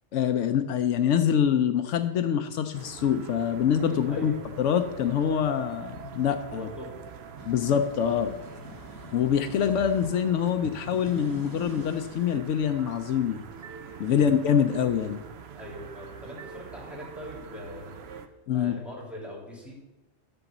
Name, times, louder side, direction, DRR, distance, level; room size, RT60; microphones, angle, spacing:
voice 1, 0.1-6.7 7.5-8.3 9.1-13.4 14.0-15.2 18.5-18.8, left 8 dB, 80° left, 9 dB, 0.9 m, -25 dB
sound 1, 2.7-18.3, right 7 dB, 65° right, 0.9 m, -44 dB
voice 2, 3.8-4.4 6.5-7.0 8.5-8.7 14.0-14.3 15.5-17.9 18.5-19.8, left 1 dB, ahead, -4 dB, 2.6 m, -42 dB
sound 2, 7.1-10.1 10.6-12.5, left 2 dB, 25° left, 0.6 m, -44 dB
10.5 x 3.9 x 7.2 m, 1.0 s
omnidirectional pair, 1.3 m